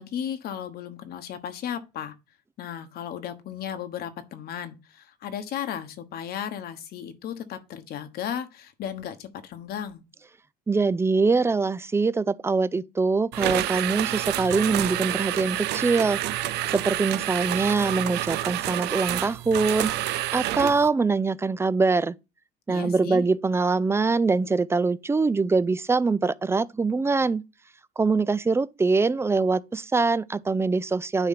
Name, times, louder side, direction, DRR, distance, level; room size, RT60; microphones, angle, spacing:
voice 1, 0.0-2.1 2.6-10.0 22.7-23.2, left 9 dB, 65° left, 1.3 m, -35 dB
voice 2, 10.7-16.2 16.7-19.9 20.3-22.1 22.7-27.4 28.0-31.3, right 4 dB, 15° right, 0.4 m, -23 dB
sound 1, 13.3-20.9, right 14 dB, 80° right, 0.5 m, -28 dB
9.7 x 3.3 x 5.8 m
cardioid pair, 110°, 17 cm